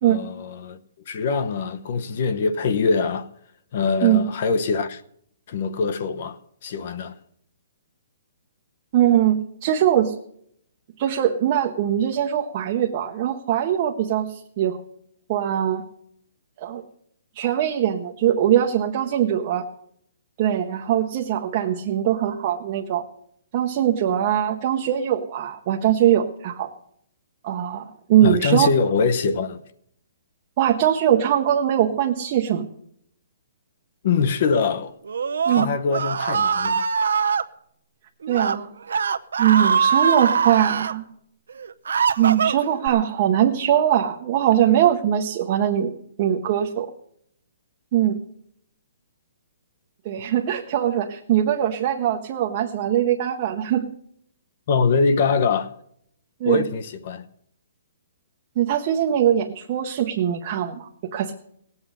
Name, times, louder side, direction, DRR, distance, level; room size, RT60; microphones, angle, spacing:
voice 1, 0.0-0.8 1.1-3.3 3.7-5.0 5.5-7.2 28.2-29.6 34.0-34.9 35.5-36.9 54.7-55.7 56.4-57.2, left 5 dB, 35° left, 0.8 m, -23 dB
voice 2, 8.9-10.1 11.0-14.8 15.3-15.8 16.6-16.8 17.3-19.6 20.4-23.0 23.5-26.7 27.4-28.7 30.6-32.7 35.5-35.7 38.3-38.7 39.4-41.1 42.2-46.9 47.9-48.2 50.0-53.8 56.4-56.6 58.6-61.3, right 10 dB, 25° right, 0.8 m, -21 dB
Screaming, 35.1-37.4 38.2-38.6 38.9-40.9 41.5-42.9, right 6 dB, 75° right, 0.7 m, -22 dB
18.0 x 8.1 x 6.7 m
hypercardioid pair, 180°, 0 cm